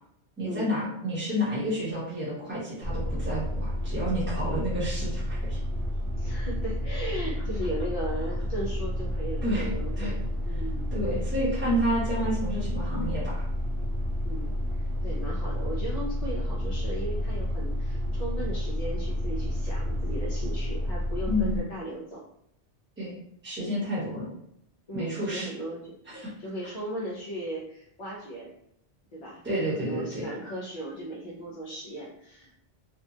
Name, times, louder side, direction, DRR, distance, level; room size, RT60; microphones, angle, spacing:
voice 1, 0.4-5.6 9.4-9.7 10.0-10.1 10.9-13.4 21.3-21.6 23.0-23.2 23.4-24.3 24.9-25.5 26.1-26.3 29.4-30.3, equal, 10° right, -8 dB, 0.9 m, -30 dB
sound 1, 2.8-21.6, equal, 55° right, 0.4 m, -30 dB
voice 2, 6.2-10.9 14.2-22.3 24.9-28.5 29.1-32.6, right 1 dB, 50° left, -5 dB, 0.5 m, -37 dB
2.8 x 2.2 x 2.7 m, 0.76 s
omnidirectional pair, 1.1 m